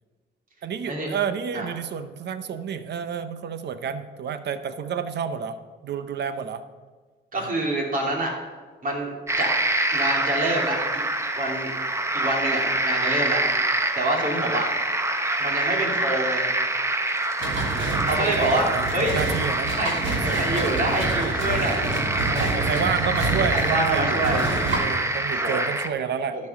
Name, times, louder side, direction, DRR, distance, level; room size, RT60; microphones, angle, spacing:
voice 1, 0.6-6.6 7.4-7.5 17.4-19.7 20.3-20.7 22.5-26.4, right 7 dB, 60° right, 12 dB, 0.8 m, -30 dB
voice 2, 7.3-8.3 8.8-9.5 9.9-11.0 11.4-11.7 12.1-13.4 13.9-14.7 15.4-16.5 18.0-18.6 18.9-19.3 19.7-21.9 22.3-22.5 23.5-24.4 25.3-25.6, right 1 dB, 45° right, 0 dB, 2.8 m, -26 dB
sound 1, 9.3-25.9, right 2 dB, 15° right, 0.9 m, -26 dB
sound 2, 17.4-24.8, right 2 dB, 75° right, 3.2 m, -28 dB
12.0 x 5.4 x 6.5 m, 1.5 s
cardioid pair, 90°, 20 cm